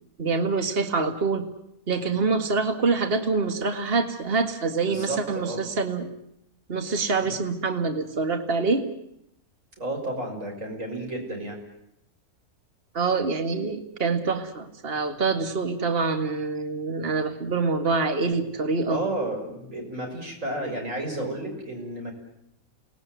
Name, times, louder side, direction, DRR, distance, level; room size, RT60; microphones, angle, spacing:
voice 1, 0.2-1.4 1.9-6.1 6.7-8.9 12.9-19.0, right 4 dB, 40° right, 7 dB, 2.1 m, -25 dB
voice 2, 4.9-5.6 7.2-7.3 9.8-11.6 18.9-22.1, right 1 dB, 55° right, 1 dB, 6.7 m, -32 dB
29.0 x 19.5 x 9.4 m, 0.79 s
omnidirectional pair, 1.6 m